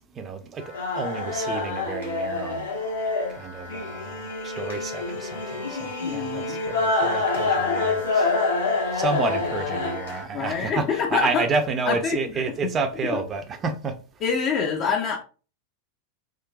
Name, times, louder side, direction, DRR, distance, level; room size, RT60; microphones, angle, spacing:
voice 1, 0.2-2.6 3.3-8.3 8.9-14.0, right 4 dB, 25° right, 0.5 m, -30 dB
sound 1, 0.6-10.2, left 3 dB, 70° left, 1.0 m, -27 dB
voice 2, 6.0-6.6 10.3-11.4 11.9-12.4 14.2-15.2, left 6 dB, 35° left, 0.6 m, -26 dB
3.7 x 2.5 x 2.3 m
figure-of-eight pair, 90°, 0 cm